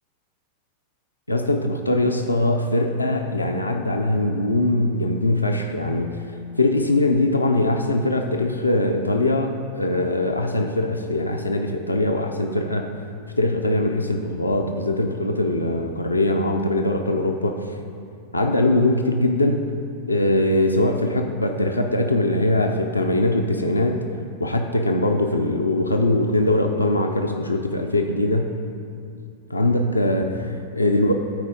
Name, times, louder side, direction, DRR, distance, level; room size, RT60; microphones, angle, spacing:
voice 1, 1.3-6.2 6.6-12.9 13.4-17.6 18.3-19.7 20.1-24.1 24.4-28.5 29.5-31.1, left 1 dB, 85° left, 4 dB, 0.5 m, -21 dB
12.5 x 4.7 x 5.1 m, 2.5 s
figure-of-eight pair, 90°, 0 cm